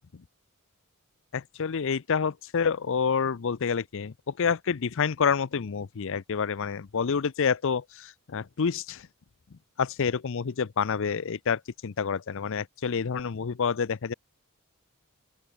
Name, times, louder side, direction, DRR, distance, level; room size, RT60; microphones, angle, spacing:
voice 1, 1.3-9.1 9.5-14.1, left 6 dB, 60° left, 0.6 m, -28 dB
open air
head